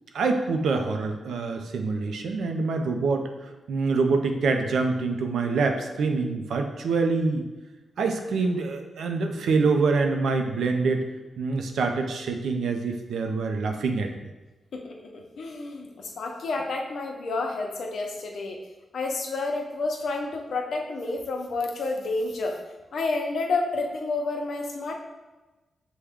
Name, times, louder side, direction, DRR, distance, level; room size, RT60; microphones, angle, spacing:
voice 1, 0.1-3.3 3.7-7.4 8.0-11.0 11.4-14.1, right 4 dB, 90° right, 4 dB, 0.5 m, -25 dB
voice 2, 14.7-18.6 18.9-22.6 22.9-25.0, left 3 dB, 70° left, 1 dB, 0.7 m, -30 dB
6.2 x 2.2 x 3.5 m, 1.1 s
cardioid pair, 100°, 0 cm